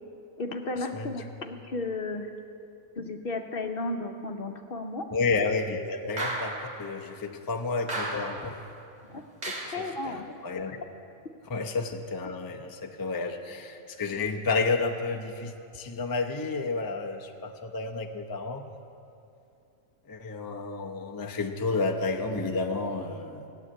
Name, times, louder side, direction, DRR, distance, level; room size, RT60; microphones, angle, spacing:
voice 1, 0.4-2.3 3.0-5.1 9.1-9.2 9.6-10.3, left 2 dB, 50° left, 5 dB, 1.0 m, -34 dB
voice 2, 5.1-8.5 9.7-10.8 11.5-18.6 20.1-23.5, left 3 dB, 20° left, 2 dB, 0.6 m, -31 dB
sound 1, 6.2-6.8 7.9-8.5 9.4-9.9, right 2 dB, 60° right, 2.3 m, -34 dB
16.5 x 8.0 x 9.9 m, 2.6 s
omnidirectional pair, 1.3 m